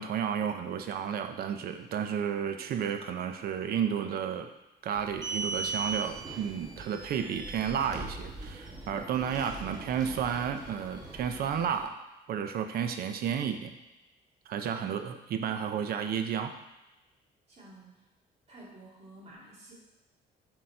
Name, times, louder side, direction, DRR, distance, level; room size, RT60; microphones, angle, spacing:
voice 1, 0.0-4.5 4.8-12.0 12.3-13.8 14.5-16.5, right 8 dB, 60° right, 7 dB, 0.6 m, -32 dB
sound 1, 4.9-11.8, right 3 dB, 20° right, 1.1 m, -39 dB
voice 2, 17.5-18.0 18.5-19.7, right 1 dB, 40° right, -6 dB, 2.3 m, -51 dB
6.4 x 4.0 x 4.4 m, 0.99 s
cardioid pair, 130°, 18 cm